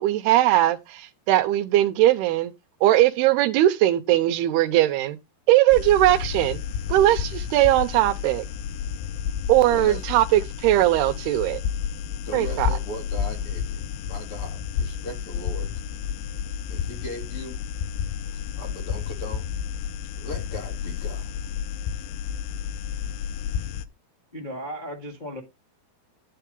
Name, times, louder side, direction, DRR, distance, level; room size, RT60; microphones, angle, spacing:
voice 1, 0.0-2.5 2.8-5.2 5.5-6.6 6.9-8.4 9.5-11.6 12.3-12.7, right 14 dB, 90° right, 2.8 m, -20 dB
sound 1, 5.7-23.8, left 8 dB, 85° left, 2.8 m, -31 dB
voice 2, 9.7-10.0 12.3-15.7 16.7-17.6 18.5-19.5 20.2-21.3, left 1 dB, 45° left, 2.1 m, -38 dB
voice 3, 24.3-25.4, equal, 25° left, 0.9 m, -35 dB
11.0 x 4.7 x 5.3 m
omnidirectional pair, 4.6 m